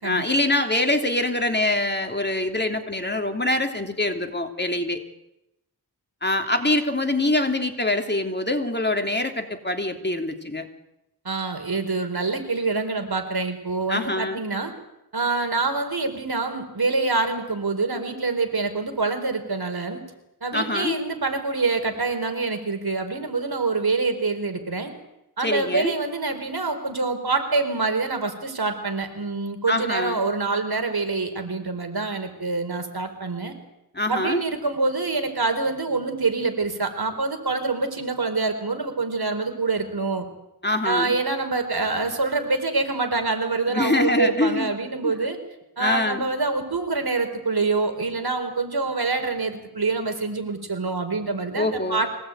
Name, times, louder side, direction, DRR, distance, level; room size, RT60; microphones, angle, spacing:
voice 1, 0.0-5.0 6.2-10.7 13.9-14.4 20.5-21.0 25.4-25.9 29.7-30.2 33.9-34.4 40.6-41.1 43.7-44.7 45.0-45.2 45.8-46.3 51.5-52.0, left 2 dB, 25° left, 4 dB, 3.0 m, -24 dB
voice 2, 11.2-14.7 15.1-20.0 20.4-24.9 25.4-33.5 34.1-40.3 40.8-45.4 45.8-52.1, right 3 dB, 60° right, 7 dB, 4.3 m, -26 dB
25.0 x 18.5 x 9.2 m, 0.89 s
wide cardioid pair, 60°, 42 cm